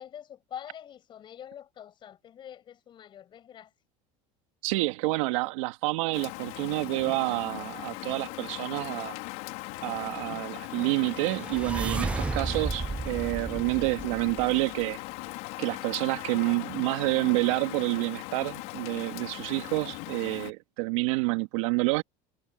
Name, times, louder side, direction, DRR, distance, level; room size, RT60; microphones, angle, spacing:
voice 1, 0.0-3.7, left 9 dB, 30° left, 6.5 m, -45 dB
voice 2, 4.6-9.2 9.8-15.0 15.6-22.0, right 23 dB, 80° right, 2.5 m, -28 dB
Rain, 6.1-20.5, left 22 dB, 60° left, 3.3 m, -39 dB
sound 1, 10.7-14.9, right 3 dB, 5° right, 0.4 m, -34 dB
cardioid pair, 160°, 16 cm